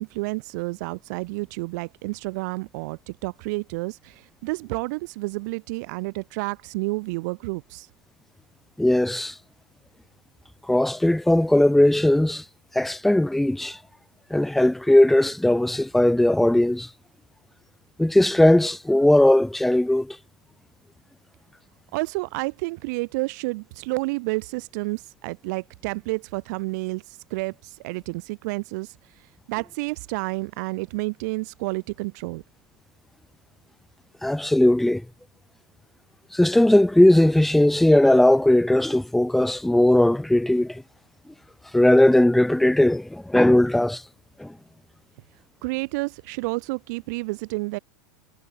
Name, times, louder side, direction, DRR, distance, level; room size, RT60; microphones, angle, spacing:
voice 1, 0.0-7.9 21.9-32.4 45.6-47.8, right 25 dB, 50° right, 3.4 m, -30 dB
voice 2, 8.8-9.3 10.7-12.4 12.8-13.8 14.3-16.9 18.0-20.2 34.2-35.0 36.3-40.8 41.7-44.0 44.4-44.5, left 1 dB, ahead, 0.3 m, -18 dB
figure-of-eight pair, 90°, 12 cm